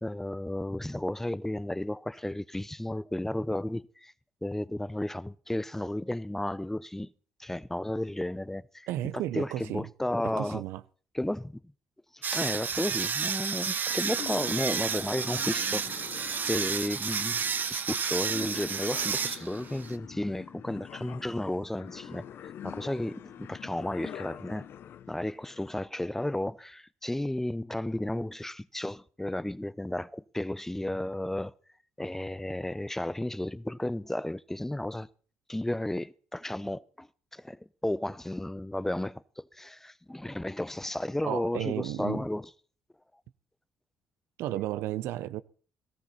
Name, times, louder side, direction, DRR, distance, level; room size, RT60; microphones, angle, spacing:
voice 1, 0.0-4.1 4.4-7.1 7.4-8.9 9.3-10.6 11.1-11.6 12.1-16.0 16.4-17.4 17.7-24.7 25.1-31.5 32.0-35.1 35.5-42.5, left 1 dB, 10° left, 0.7 m, -33 dB
voice 2, 8.9-9.9 10.2-10.8 41.2-42.2 44.4-45.4, right 14 dB, 80° right, 0.6 m, -33 dB
sound 1, 12.2-20.0, right 6 dB, 50° right, 1.1 m, -31 dB
sound 2, 13.9-25.8, left 10 dB, 65° left, 0.8 m, -46 dB
17.5 x 14.5 x 4.2 m
supercardioid pair, 60°, 4 cm